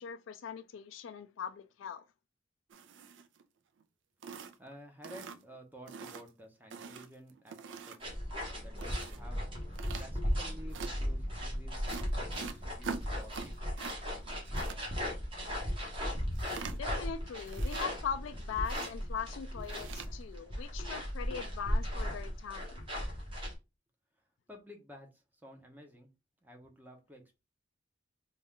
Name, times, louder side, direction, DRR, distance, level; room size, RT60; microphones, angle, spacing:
voice 1, 0.0-2.0 16.7-22.8, left 7 dB, 85° left, 0.3 m, -41 dB
sound 1, 2.7-3.4 3.8-3.9 4.2-4.7 5.0-5.6 5.9-6.3 6.7-8.1 8.8-9.2 9.8-10.1 10.7-10.9 11.9-14.0 14.2-14.8 16.4-17.0 17.4-18.2 18.6-18.9 19.6-20.1, right 5 dB, 75° right, 0.4 m, -44 dB
voice 2, 4.6-7.6 7.9-9.4 10.0-13.5 24.5-26.1 26.4-27.4, equal, 10° right, 0.8 m, -53 dB
sound 2, 8.0-23.5, equal, 25° right, 1.4 m, -36 dB
4.1 x 2.4 x 3.6 m
head